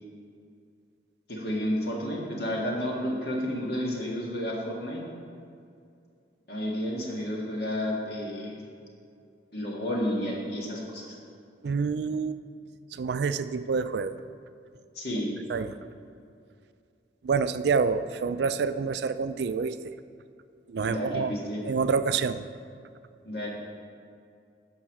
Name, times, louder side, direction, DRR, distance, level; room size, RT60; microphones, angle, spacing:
voice 1, 1.3-5.0 6.5-8.6 9.5-11.2 15.0-15.3 20.8-21.6 23.2-23.5, equal, 60° left, -2 dB, 1.8 m, -31 dB
voice 2, 11.6-12.4 12.9-14.2 15.5-15.8 17.2-19.8 20.7-21.3 21.6-22.5, right 5 dB, 65° right, 12 dB, 0.4 m, -27 dB
9.1 x 5.6 x 6.4 m, 2.4 s
head